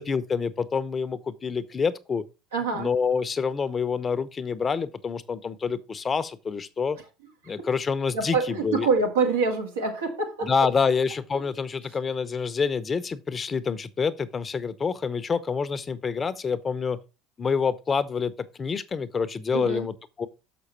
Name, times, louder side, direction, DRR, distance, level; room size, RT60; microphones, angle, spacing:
voice 1, 0.0-2.2 2.7-7.0 7.5-8.9 10.4-17.0 17.4-18.3 18.6-20.3, left 5 dB, 30° left, 0.7 m, -27 dB
voice 2, 2.5-2.9 7.4-7.7 8.1-10.7 19.5-19.9, right 4 dB, 90° right, 1.7 m, -26 dB
6.4 x 6.2 x 4.3 m
hypercardioid pair, 75°, 0 cm